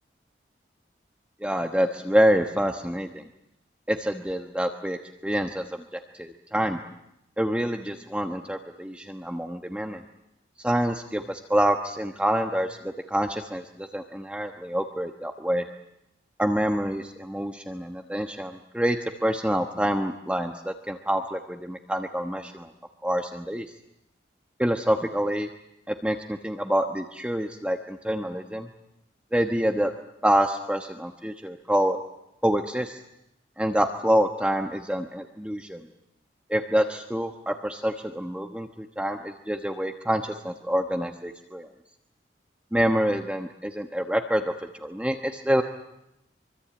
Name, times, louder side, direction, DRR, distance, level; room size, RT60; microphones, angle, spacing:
voice 1, 1.4-3.2 3.9-6.8 7.4-10.0 10.6-15.7 16.4-22.7 23.0-23.7 24.6-25.5 25.9-28.7 29.3-29.9 30.2-32.0 32.4-33.0 33.6-35.8 36.5-41.7 42.7-44.5 44.8-45.6, equal, 5° right, 5 dB, 1.2 m, -26 dB
24.5 x 24.5 x 8.8 m, 0.84 s
head